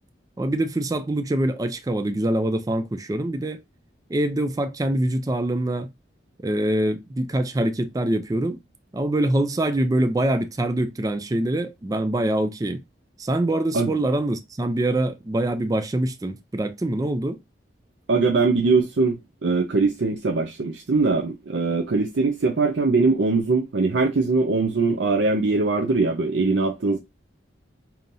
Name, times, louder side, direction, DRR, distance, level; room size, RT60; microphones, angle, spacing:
voice 1, 0.4-3.6 4.1-5.9 6.4-8.6 8.9-12.8 13.2-17.4, right 1 dB, 20° right, 0.4 m, -24 dB
voice 2, 18.1-27.0, right 3 dB, 75° right, 0.6 m, -21 dB
5.3 x 2.8 x 2.6 m
head